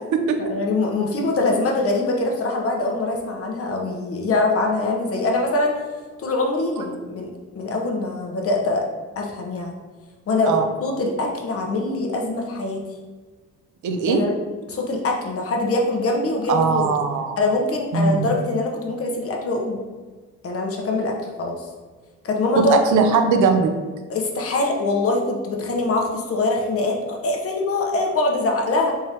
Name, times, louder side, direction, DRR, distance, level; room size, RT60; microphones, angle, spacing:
voice 1, 0.5-5.8 6.2-8.8 9.2-9.7 10.3-12.8 14.1-14.3 14.7-16.8 17.4-19.8 20.4-21.7 22.2-23.1 24.1-28.9, left 2 dB, 50° left, 1 dB, 0.8 m, -23 dB
voice 2, 13.8-14.2 16.5-17.4 17.9-18.3 22.6-23.7, right 5 dB, 75° right, 5 dB, 0.6 m, -20 dB
3.6 x 3.3 x 2.8 m, 1.4 s
cardioid pair, 90°, 30 cm